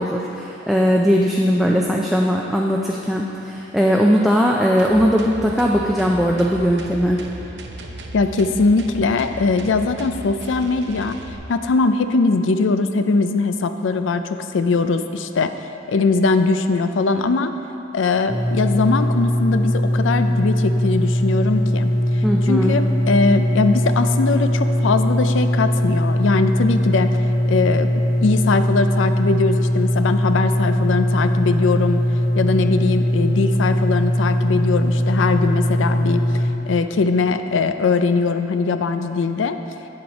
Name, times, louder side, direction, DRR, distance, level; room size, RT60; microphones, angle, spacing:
voice 1, 0.0-7.2 22.2-22.8, equal, ahead, -2 dB, 0.4 m, -19 dB
sound 1, 4.8-11.3, right 1 dB, 65° right, 0.7 m, -36 dB
voice 2, 8.1-11.2 11.5-15.5 15.9-17.5 17.9-27.1 27.5-27.9 28.2-32.0 32.4-39.6, left 4 dB, 90° left, 9 dB, 0.4 m, -20 dB
sound 2, 18.3-36.5, equal, 25° left, 1.5 m, -20 dB
8.7 x 7.8 x 4.0 m, 3.0 s
head